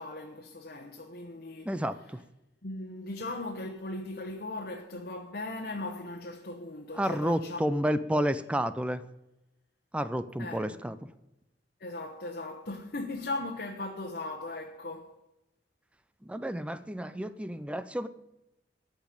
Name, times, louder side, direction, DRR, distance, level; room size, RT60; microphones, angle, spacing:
voice 1, 0.0-1.7 2.6-7.6 8.1-8.2 10.4-10.8 11.8-15.1, left 2 dB, 55° left, 1.1 m, -38 dB
voice 2, 1.7-2.2 6.9-9.0 9.9-11.0 16.3-18.1, equal, 5° right, 0.5 m, -30 dB
13.5 x 5.2 x 9.2 m
head